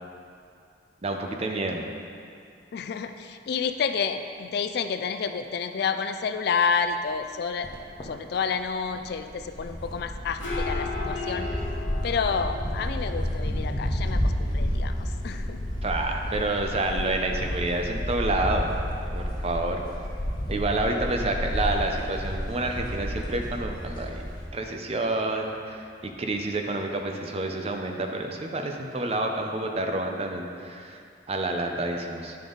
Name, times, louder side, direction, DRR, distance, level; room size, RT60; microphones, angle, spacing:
voice 1, 1.0-1.8 15.8-18.7 19.1-19.8 20.5-24.2 24.5-31.0 31.3-32.4, right 2 dB, 35° right, 3 dB, 0.6 m, -29 dB
voice 2, 2.7-7.7 8.0-11.5 12.0-15.6, left 6 dB, 55° left, 8 dB, 0.3 m, -29 dB
sound 1, 6.8-6.9 7.6-7.7 8.0-8.1 8.3-24.5, equal, 25° left, 1.0 m, -31 dB
sound 2, 10.0-27.4, left 3 dB, 80° left, 1.3 m, -42 dB
9.8 x 5.3 x 3.9 m, 2.4 s
head